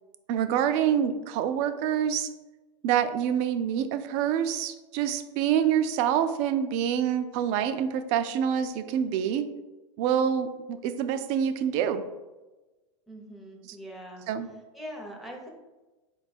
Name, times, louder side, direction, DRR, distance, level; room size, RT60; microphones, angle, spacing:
voice 1, 0.3-2.3 2.8-9.5 10.0-12.0 14.3-14.5, right 9 dB, 45° right, 10 dB, 0.4 m, -26 dB
voice 2, 13.1-14.2 14.7-15.5, equal, ahead, -1 dB, 0.7 m, -42 dB
4.3 x 2.3 x 4.1 m, 1.1 s
supercardioid pair, 130°, 16 cm